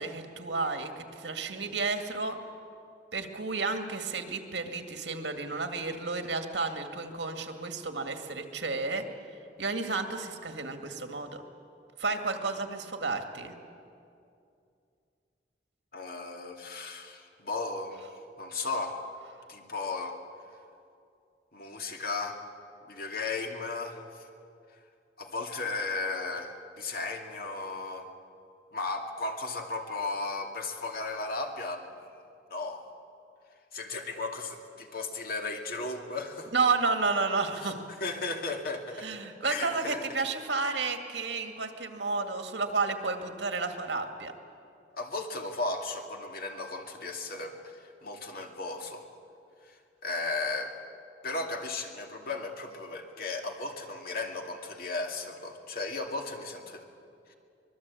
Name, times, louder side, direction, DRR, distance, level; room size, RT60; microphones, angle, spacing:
voice 1, 0.0-2.4 3.1-9.0 9.6-11.4 12.0-13.6 36.5-37.8 39.0-44.3, right 4 dB, 85° right, 6 dB, 2.1 m, -31 dB
voice 2, 15.9-18.1 18.4-19.0 19.5-20.2 21.5-22.4 22.8-24.3 25.2-28.1 28.7-31.9 32.5-32.8 33.7-36.5 37.6-37.7 38.0-39.1 39.4-40.0 44.9-49.1 49.6-50.7 51.2-56.8 57.3-57.4, left 3 dB, 55° left, 3 dB, 2.3 m, -35 dB
24.5 x 21.0 x 8.5 m, 2.5 s
head